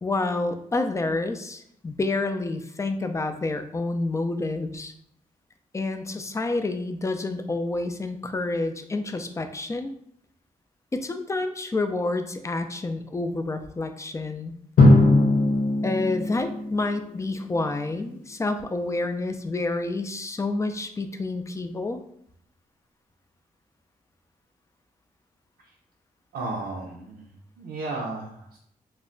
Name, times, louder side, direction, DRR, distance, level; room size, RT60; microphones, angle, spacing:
voice 1, 0.0-4.9 5.7-9.9 10.9-14.6 15.8-22.0, left 2 dB, 20° left, 8 dB, 0.3 m, -28 dB
Drum, 14.8-17.4, left 2 dB, 65° left, 0.7 m, -19 dB
voice 2, 26.3-28.6, right 2 dB, 90° right, -3 dB, 0.5 m, -34 dB
2.1 x 2.1 x 3.7 m, 0.69 s
cardioid pair, 65°, 15 cm